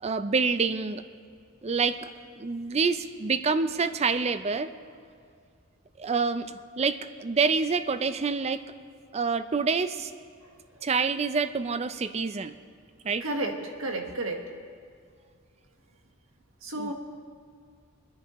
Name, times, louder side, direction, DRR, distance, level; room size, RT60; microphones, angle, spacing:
voice 1, 0.0-1.0 1.6-2.1 2.4-4.7 6.0-8.6 9.1-10.1 10.8-12.5 13.0-13.2 16.8-16.9, right 4 dB, 30° right, 12 dB, 0.5 m, -27 dB
voice 2, 10.4-10.9 13.2-14.4 16.6-16.9, right 2 dB, 85° right, 2 dB, 1.5 m, -33 dB
23.0 x 10.0 x 3.1 m, 2.2 s
head